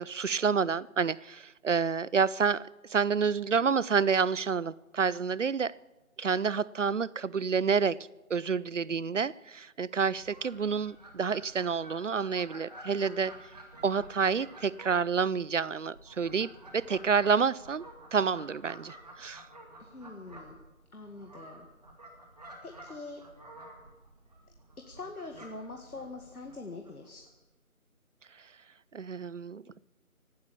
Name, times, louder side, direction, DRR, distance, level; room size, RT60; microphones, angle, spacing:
voice 1, 0.0-5.8 6.2-13.3 13.8-17.8 18.1-19.5 28.9-29.6, right 6 dB, 60° right, 22 dB, 0.5 m, -29 dB
Fowl, 10.0-27.3, right 1 dB, 30° right, 2.0 m, -51 dB
voice 2, 19.8-21.7 22.6-23.3 24.5-27.2, left 3 dB, 85° left, 4 dB, 1.9 m, -44 dB
17.0 x 12.0 x 6.9 m, 1.1 s
figure-of-eight pair, 170°, 43 cm